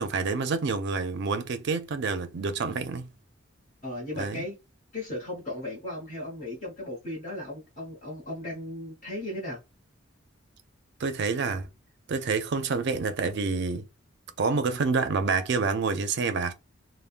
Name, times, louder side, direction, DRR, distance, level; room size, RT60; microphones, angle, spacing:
voice 1, 0.0-3.1 4.1-4.4 11.0-11.7 12.1-13.8 14.4-16.5, right 4 dB, 60° right, 0.4 m, -28 dB
voice 2, 3.8-4.5 4.9-9.6, left 1 dB, 40° left, 1.1 m, -36 dB
3.4 x 2.1 x 2.4 m
head